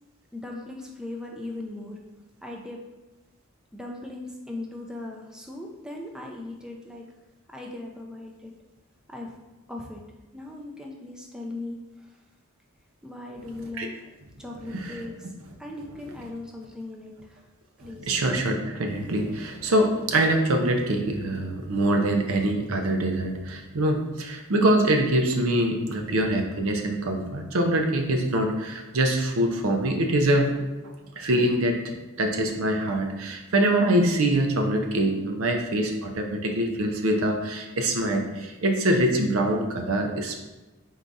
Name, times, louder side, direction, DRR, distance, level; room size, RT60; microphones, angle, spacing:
voice 1, 0.3-2.0 2.4-2.8 3.7-7.0 7.5-8.5 9.1-9.3 9.7-10.0 10.3-12.2 13.0-14.0 14.4-15.3 15.6-17.4 17.8-18.1, left 2 dB, 5° right, -1 dB, 0.4 m, -38 dB
voice 2, 17.8-40.4, right 1 dB, 75° right, 3 dB, 0.6 m, -24 dB
3.8 x 2.7 x 4.6 m, 1.1 s
head